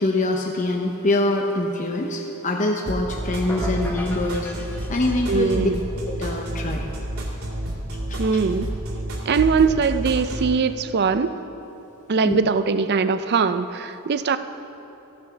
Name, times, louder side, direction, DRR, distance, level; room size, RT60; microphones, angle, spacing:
voice 1, 0.0-5.7 6.1-6.9 8.1-8.4 12.2-12.4, left 2 dB, 35° left, 1 dB, 0.8 m, -24 dB
sound 1, 2.9-10.5, right 1 dB, 75° right, 2.3 m, -30 dB
sound 2, 3.5-5.6, equal, 10° left, 1.0 m, -37 dB
voice 2, 5.3-5.8 8.2-8.7 9.3-11.3 12.1-14.4, right 5 dB, 50° right, 11 dB, 0.5 m, -21 dB
15.5 x 8.7 x 5.7 m, 3.0 s
head